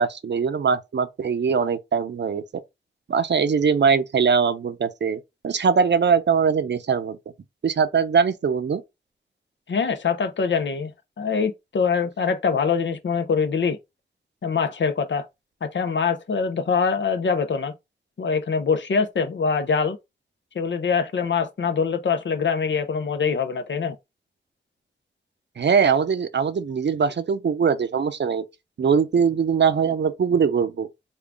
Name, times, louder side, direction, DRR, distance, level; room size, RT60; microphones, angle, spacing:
voice 1, 0.0-2.4 3.1-7.2 7.6-8.8 25.6-28.4 28.8-30.9, right 6 dB, 70° right, 0.5 m, -21 dB
voice 2, 9.7-10.9 11.2-13.8 14.4-15.3 15.6-17.7 18.2-20.0 20.5-24.0, left 5 dB, 80° left, 0.6 m, -24 dB
3.7 x 2.3 x 3.4 m
wide cardioid pair, 75°, 19 cm